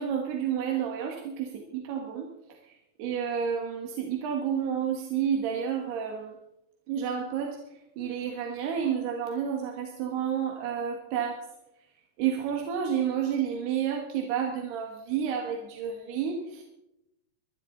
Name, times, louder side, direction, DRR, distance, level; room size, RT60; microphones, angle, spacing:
voice 1, 0.0-2.3 3.0-6.3 6.9-7.6 8.0-11.4 12.2-16.6, right 8 dB, 85° right, 1 dB, 3.6 m, -30 dB
23.5 x 12.0 x 3.9 m, 0.88 s
omnidirectional pair, 4.5 m